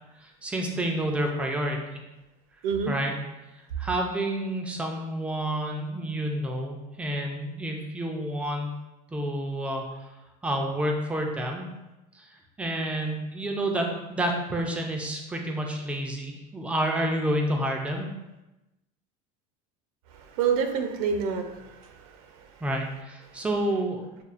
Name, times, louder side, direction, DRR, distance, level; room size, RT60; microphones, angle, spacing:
voice 1, 0.2-2.0 2.9-3.1 3.8-8.7 9.1-10.1 10.4-11.7 12.1-18.1 22.6-24.0, right 1 dB, 5° right, 2 dB, 0.3 m, -29 dB
voice 2, 2.6-2.9 20.1-22.6 23.3-23.4, right 6 dB, 70° right, 6 dB, 0.6 m, -29 dB
6.6 x 2.3 x 2.4 m, 1.0 s
cardioid pair, 170°, 19 cm